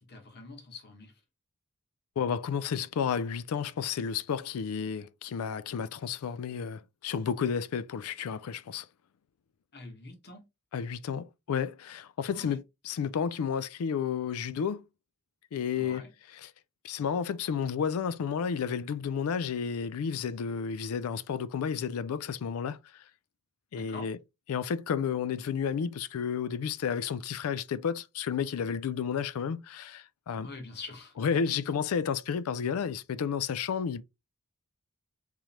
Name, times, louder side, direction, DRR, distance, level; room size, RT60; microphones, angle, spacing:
voice 1, 0.1-1.1 9.7-10.4 12.3-12.6 15.7-16.1 23.7-24.1 30.4-31.1, left 3 dB, 50° left, 1.2 m, -45 dB
voice 2, 2.2-8.9 10.7-14.8 15.5-16.5 16.8-23.0 23.7-24.2 24.5-30.5 31.2-34.0, left 7 dB, 75° left, 0.4 m, -32 dB
3.7 x 3.1 x 2.8 m
head